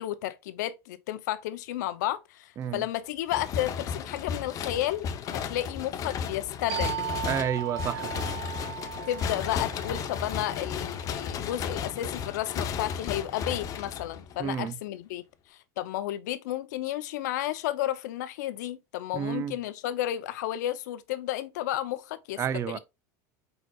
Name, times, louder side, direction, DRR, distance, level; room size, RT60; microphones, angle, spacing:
voice 1, 0.0-7.0 9.1-15.2 15.5-22.8, left 13 dB, 90° left, 0.6 m, -32 dB
sound 1, 3.3-14.5, left 7 dB, 40° left, 0.7 m, -34 dB
sound 2, 6.7-12.0, right 13 dB, 50° right, 1.0 m, -38 dB
voice 2, 7.3-8.2 14.4-14.7 19.1-19.5 22.4-22.8, right 8 dB, 30° right, 0.5 m, -30 dB
4.8 x 4.2 x 2.3 m
supercardioid pair, 130°, 9 cm